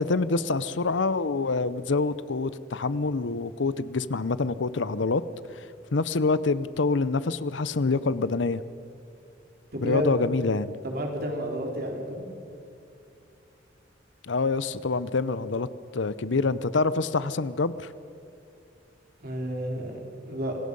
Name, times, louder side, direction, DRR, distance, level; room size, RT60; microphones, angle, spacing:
voice 1, 0.0-5.2 5.5-5.6 5.9-8.6 9.8-10.7 14.3-15.7 15.9-17.9, left 3 dB, 80° left, 16 dB, 0.7 m, -26 dB
voice 2, 9.7-10.2 10.8-12.3 19.2-20.6, equal, 50° right, 1 dB, 3.8 m, -31 dB
26.5 x 19.0 x 5.5 m, 2.8 s
head